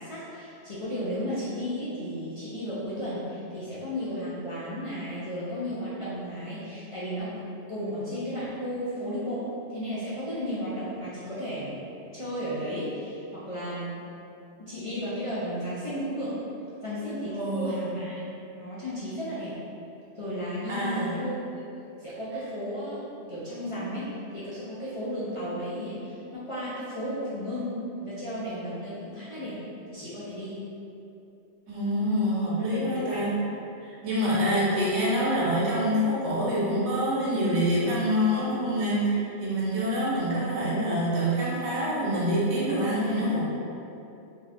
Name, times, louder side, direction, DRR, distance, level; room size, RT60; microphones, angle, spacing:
voice 1, 0.0-7.3 7.7-9.4 9.7-11.8 12.1-14.0 14.6-16.3 16.8-18.2 18.5-19.6 20.2-21.6 22.0-29.6 29.9-30.6 32.7-33.3 34.2-34.4, equal, 40° left, -11 dB, 0.5 m, -34 dB
voice 2, 17.3-18.0 20.7-21.3 31.7-33.3 33.8-43.4, equal, 75° right, -7 dB, 1.1 m, -26 dB
2.6 x 2.4 x 3.3 m, 2.8 s
omnidirectional pair, 1.2 m